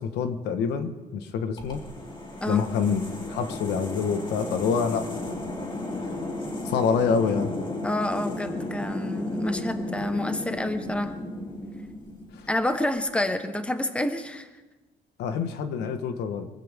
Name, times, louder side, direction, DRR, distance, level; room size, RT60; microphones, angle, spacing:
voice 1, 0.0-1.8 2.5-3.0 3.3-5.5 6.6-7.5 12.3-12.5 15.2-16.5, left 6 dB, 80° left, 8 dB, 1.5 m, -27 dB
sound 1, 1.6-12.7, left 2 dB, 30° left, 3.0 m, -34 dB
voice 2, 7.8-11.1 12.5-14.5, left 1 dB, 5° left, 8 dB, 1.2 m, -28 dB
23.5 x 15.0 x 3.7 m, 1.2 s
cardioid pair, 110°, 17 cm